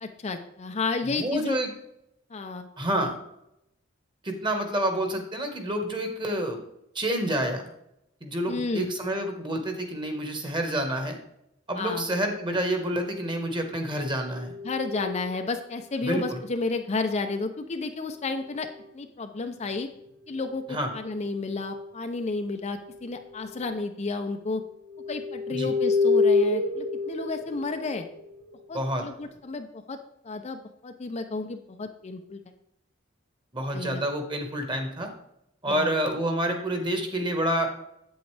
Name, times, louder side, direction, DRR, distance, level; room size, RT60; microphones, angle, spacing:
voice 1, 0.0-1.6 2.3-2.7 3.0-3.1 8.5-8.9 11.8-12.1 14.6-18.7 18.9-19.9 20.3-24.6 25.1-28.1 28.7-30.0 30.2-32.4 33.7-34.0 35.7-35.9, left 3 dB, 35° left, 6 dB, 0.5 m, -32 dB
voice 2, 1.1-1.7 2.8-3.1 4.2-6.6 6.9-7.7 8.2-11.2 11.7-14.6 16.0-16.4 20.7-20.9 25.6-25.7 28.7-29.1 33.5-35.1 35.6-37.7, right 1 dB, 25° right, 4 dB, 1.4 m, -28 dB
sound 1, 14.0-15.8 18.2-19.0 19.7-21.9 22.8-23.0 23.3-23.8 24.4-29.2, left 3 dB, 70° right, 1.1 m, -30 dB
8.1 x 7.9 x 3.3 m, 0.80 s
head